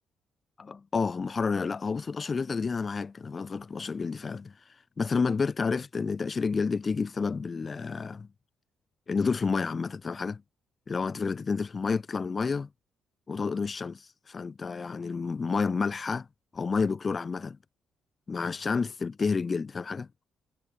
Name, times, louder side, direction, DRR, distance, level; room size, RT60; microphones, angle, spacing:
voice 1, 0.6-4.5 5.0-8.3 9.1-10.4 10.9-12.7 13.3-16.3 16.5-17.6 18.3-20.1, left 5 dB, 35° left, 0.7 m, -30 dB
cardioid pair, 90°, 0 cm